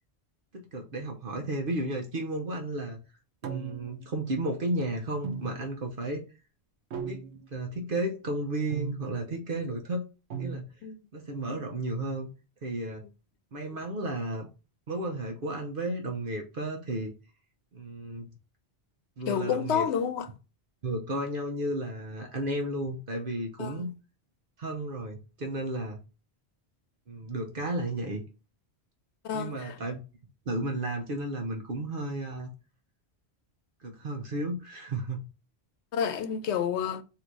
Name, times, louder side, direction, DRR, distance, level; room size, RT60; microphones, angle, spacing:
voice 1, 0.5-3.0 3.4-6.2 7.0-7.2 7.5-10.0 10.4-10.6 11.1-12.3 12.6-13.0 13.5-14.5 14.9-17.1 17.7-18.3 19.2-19.9 20.8-23.9 24.6-26.0 27.1-28.2 29.3-30.0 30.5-32.5 33.8-35.3, right 1 dB, 55° right, 1.0 m, -33 dB
sound 1, 3.4-4.1 5.2-5.9 6.9-7.5 8.7-9.3 10.3-10.6, right 6 dB, 90° right, 1.0 m, -37 dB
voice 2, 19.3-20.3 23.6-23.9 29.2-29.8 35.9-37.0, left 8 dB, 90° left, 0.9 m, -29 dB
3.9 x 2.9 x 4.6 m
omnidirectional pair, 1.1 m